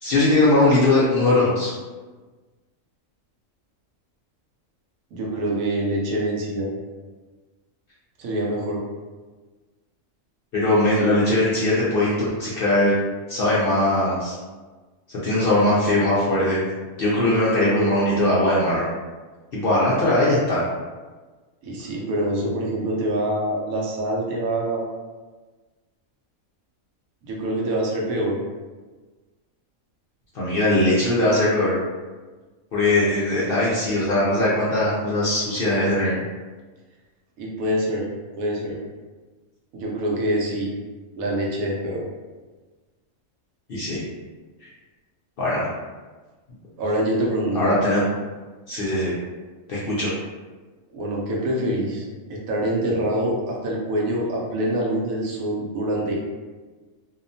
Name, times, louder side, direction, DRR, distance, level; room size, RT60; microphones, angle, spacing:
voice 1, 0.0-1.7 10.5-12.9 13.3-14.4 15.1-16.6 17.0-18.9 19.5-20.6 30.3-31.8 32.7-36.2 43.7-44.0 45.4-45.7 47.5-48.0 48.7-49.1 49.7-50.1, left 1 dB, 60° left, -8 dB, 0.6 m, -20 dB
voice 2, 5.1-6.7 8.2-8.8 21.6-24.8 27.2-28.4 37.4-38.1 38.4-38.8 39.7-40.7 41.2-42.0 46.8-47.7 50.9-56.3, right 1 dB, 80° right, -2 dB, 1.1 m, -25 dB
2.8 x 2.1 x 2.6 m, 1.3 s
omnidirectional pair, 1.4 m